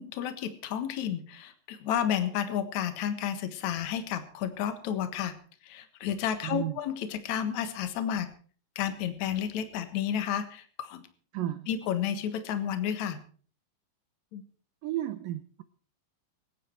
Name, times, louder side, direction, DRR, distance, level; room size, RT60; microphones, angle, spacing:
voice 1, 0.0-5.3 5.6-8.3 8.8-11.1 11.7-13.2 14.3-14.4, left 9 dB, 60° left, 9 dB, 2.2 m, -31 dB
voice 2, 6.4-6.8 11.3-11.7 14.8-15.6, right 13 dB, 85° right, 11 dB, 1.9 m, -33 dB
25.0 x 9.8 x 4.6 m, 0.43 s
omnidirectional pair, 5.1 m